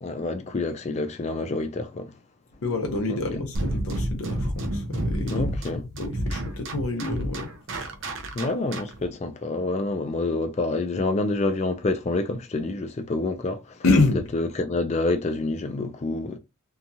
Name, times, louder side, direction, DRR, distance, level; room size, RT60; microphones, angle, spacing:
voice 1, 0.0-2.2 3.1-3.4 5.3-5.8 8.3-13.8 14.3-16.4, left 2 dB, 30° left, 0.3 m, -27 dB
voice 2, 2.6-5.4 5.9-7.5 13.8-14.2, left 3 dB, 80° left, 0.7 m, -26 dB
sound 1, 3.5-9.1, right 1 dB, 60° right, 0.6 m, -30 dB
2.8 x 2.3 x 2.6 m
head